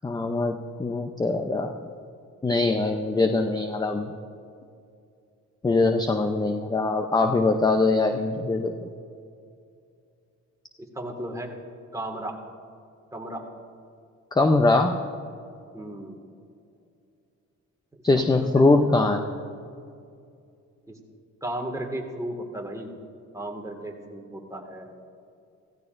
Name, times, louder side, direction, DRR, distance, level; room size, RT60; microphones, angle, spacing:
voice 1, 0.0-1.7 2.4-4.1 5.6-8.9 14.3-15.0 18.0-19.2, left 3 dB, 15° left, 6 dB, 0.6 m, -22 dB
voice 2, 10.8-11.5 11.9-12.4 13.1-13.4 15.7-16.2 18.2-19.1 20.9-21.0 21.4-22.9 23.3-24.9, right 1 dB, 10° right, 1 dB, 1.9 m, -35 dB
16.0 x 15.5 x 2.6 m, 2.4 s
cardioid pair, 90°, 30 cm